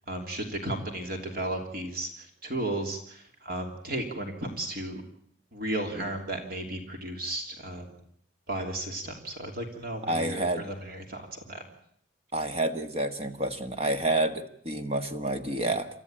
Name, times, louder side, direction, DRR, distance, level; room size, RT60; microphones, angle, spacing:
voice 1, 0.1-5.0 5.5-8.0 8.5-11.6, right 1 dB, 45° right, 4 dB, 3.0 m, -34 dB
voice 2, 10.0-10.7 12.3-15.9, right 1 dB, 30° right, 8 dB, 1.5 m, -29 dB
28.5 x 13.5 x 8.9 m, 0.67 s
head